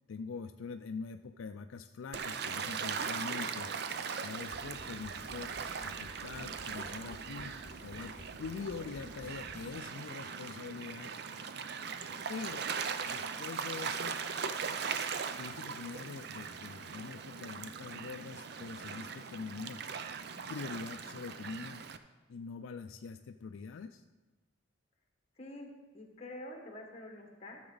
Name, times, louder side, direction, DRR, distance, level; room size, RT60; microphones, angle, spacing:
voice 1, 0.1-3.7 4.1-8.1 8.4-11.1 12.3-12.7 13.0-14.2 15.4-19.8 20.5-21.8 22.3-24.0, left 5 dB, 75° left, 7 dB, 0.4 m, -44 dB
Gull seagull / Waves surf, 2.1-22.0, right 6 dB, 50° right, 0.5 m, -40 dB
sound 1, 4.5-9.7, left 1 dB, 5° left, 3.0 m, -54 dB
voice 2, 25.4-27.6, left 1 dB, 30° left, 1 dB, 1.6 m, -47 dB
13.5 x 7.1 x 3.9 m, 1.2 s
head